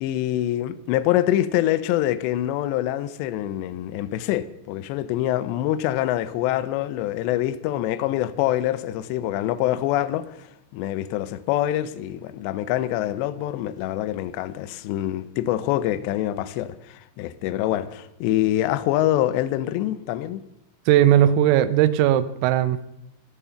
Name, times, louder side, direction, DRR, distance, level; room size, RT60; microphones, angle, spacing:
voice 1, 0.0-20.4, left 13 dB, 80° left, 2.6 m, -25 dB
voice 2, 20.9-22.9, right 11 dB, 90° right, 3.5 m, -18 dB
14.5 x 12.5 x 5.8 m
omnidirectional pair, 5.9 m